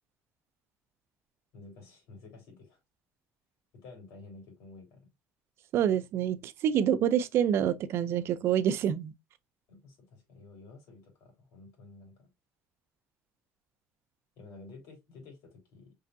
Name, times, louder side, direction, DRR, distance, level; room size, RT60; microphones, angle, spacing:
voice 1, 1.5-2.8 3.7-5.1 9.7-12.3 14.3-15.9, left 3 dB, 75° left, 3.4 m, -51 dB
voice 2, 5.7-9.1, right 9 dB, 55° right, 0.6 m, -27 dB
5.6 x 3.4 x 2.6 m
cardioid pair, 130°, 5 cm